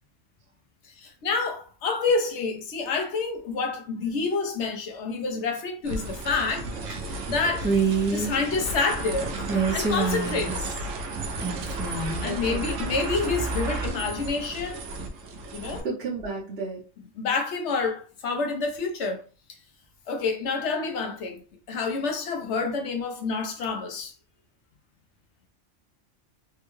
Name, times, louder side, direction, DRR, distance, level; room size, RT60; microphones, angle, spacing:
voice 1, 0.9-7.7 8.1-9.4 9.7-10.6 12.2-14.8 15.5-15.9 17.2-19.2 20.1-21.4 21.7-24.1, left 4 dB, 65° left, 1.0 m, -28 dB
sound 1, 5.8-15.8, right 2 dB, 85° right, 1.0 m, -33 dB
Female speech woman speaking, 7.6-8.3 9.4-10.9 11.4-12.3, right 4 dB, 15° right, 0.4 m, -26 dB
voice 2, 12.2-13.1 15.8-16.8, right 3 dB, 55° right, 1.1 m, -34 dB
3.5 x 2.2 x 3.0 m
omnidirectional pair, 1.3 m